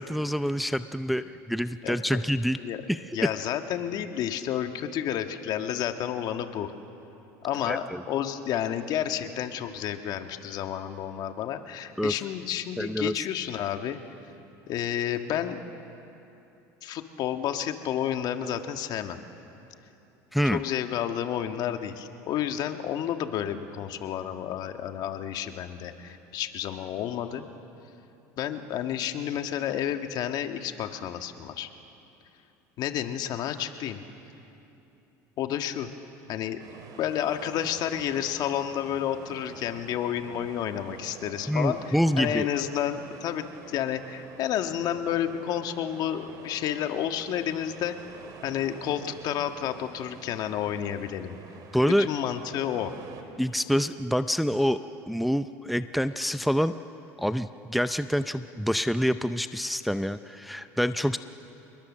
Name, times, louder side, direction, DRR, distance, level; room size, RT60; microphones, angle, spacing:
voice 1, 0.0-2.6 2.9-3.1 7.7-8.0 12.0-12.1 12.8-13.3 20.3-20.6 41.5-42.5 51.7-52.1 53.4-54.8 55.1-56.7 57.2-61.2, equal, ahead, 11 dB, 0.5 m, -26 dB
voice 2, 1.8-2.2 2.6-2.8 3.1-6.7 7.4-14.0 14.7-15.6 16.8-19.2 20.4-27.4 28.4-31.7 32.8-34.0 35.4-35.9 36.3-36.6 37.0-48.0 48.4-51.4 51.9-52.9, left 10 dB, 55° left, 7 dB, 1.6 m, -30 dB
sound 1, 36.6-53.2, right 5 dB, 50° right, 3.2 m, -47 dB
28.0 x 21.5 x 7.4 m, 2.9 s
supercardioid pair, 105°, 8 cm